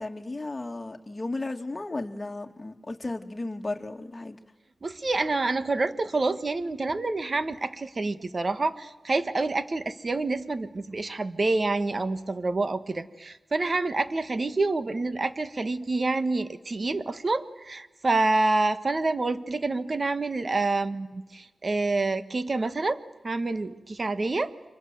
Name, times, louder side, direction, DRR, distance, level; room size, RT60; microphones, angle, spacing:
voice 1, 0.0-4.4, left 2 dB, 25° left, 4 dB, 2.3 m, -34 dB
voice 2, 4.8-24.5, right 3 dB, 45° right, 11 dB, 1.5 m, -27 dB
30.0 x 24.5 x 7.8 m, 1.2 s
cardioid pair, 65°, 0 cm